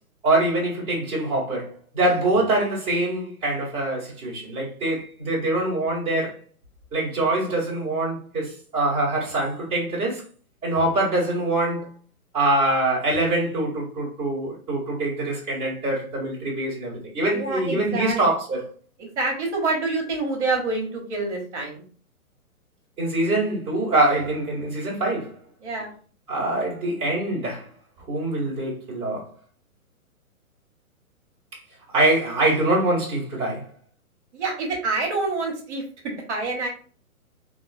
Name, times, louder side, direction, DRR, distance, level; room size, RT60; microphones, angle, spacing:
voice 1, 0.2-6.4 6.9-10.2 10.6-11.9 12.3-18.6 23.0-25.4 26.3-27.7 28.1-29.2 31.9-33.6, right 2 dB, 15° right, 1.1 m, -24 dB
voice 2, 17.3-18.2 19.0-21.8 25.6-25.9 34.3-36.7, right 3 dB, 50° right, 1.1 m, -27 dB
3.5 x 2.5 x 2.5 m
figure-of-eight pair, 130°, 43 cm